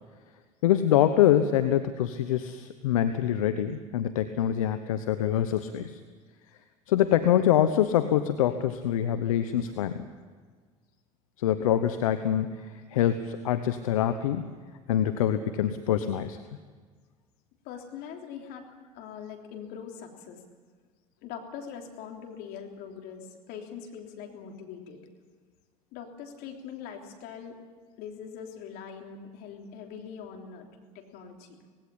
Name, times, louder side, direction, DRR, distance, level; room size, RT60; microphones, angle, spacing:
voice 1, 0.6-6.0 6.9-10.0 11.4-14.5 14.9-16.4, left 10 dB, 85° left, 10 dB, 0.9 m, -25 dB
voice 2, 17.7-20.4 21.2-25.0 25.9-27.6 28.0-30.7 31.0-31.6, left 7 dB, 65° left, 3 dB, 3.4 m, -42 dB
19.0 x 17.0 x 10.0 m, 1.6 s
hypercardioid pair, 75°, 17 cm